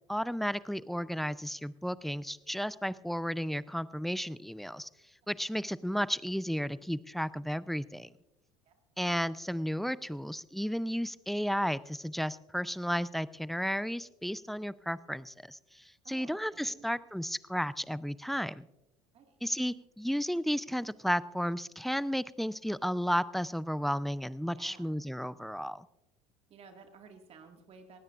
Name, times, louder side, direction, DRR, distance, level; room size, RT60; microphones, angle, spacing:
voice 1, 0.1-4.9 5.3-8.1 9.0-15.6 16.1-18.7 19.4-25.8, equal, ahead, 18 dB, 0.5 m, -33 dB
voice 2, 16.0-16.9 19.1-19.4 24.5-25.0 26.5-28.0, right 5 dB, 40° right, 4 dB, 1.9 m, -54 dB
19.0 x 16.5 x 2.4 m, 0.95 s
hypercardioid pair, 70°, 15 cm